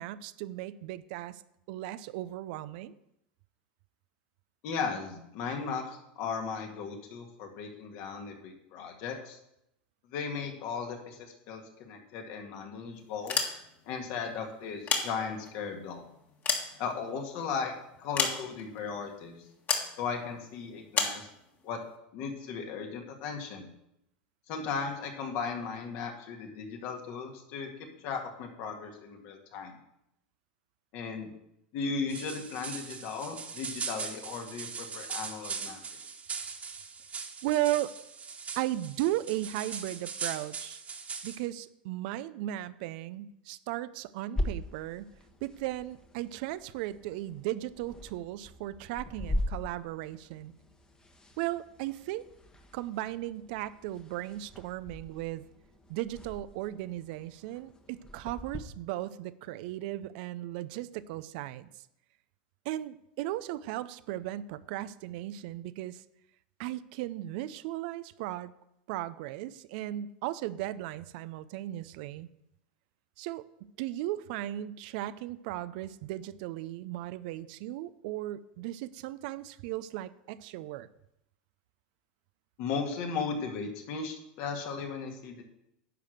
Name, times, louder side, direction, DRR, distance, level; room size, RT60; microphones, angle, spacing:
voice 1, 0.0-1.4 1.7-2.9 37.4-37.9 38.6-40.8 41.2-45.1 45.4-50.5 51.4-52.3 52.7-55.4 55.9-61.7 62.6-66.0 66.6-68.5 68.9-72.3 73.2-80.9, right 14 dB, 65° right, 15 dB, 0.5 m, -36 dB
voice 2, 4.6-9.4 10.1-13.4 13.9-16.0 16.8-17.7 18.0-19.4 20.0-21.3 21.6-21.8 22.1-23.7 24.5-29.8 30.9-31.3 31.7-36.0 82.6-85.4, left 5 dB, 60° left, 3 dB, 2.0 m, -36 dB
sound 1, 13.1-14.0 14.6-15.6 16.1-17.4 18.2-18.8 19.7-20.0 20.9-21.2, left 5 dB, 35° left, 1.9 m, -31 dB
sound 2, 32.1-41.4, right 5 dB, 25° right, 1.5 m, -40 dB
sound 3, 44.4-58.6, left 1 dB, 15° left, 1.2 m, -41 dB
10.5 x 4.9 x 6.6 m, 0.81 s
hypercardioid pair, 100°, 5 cm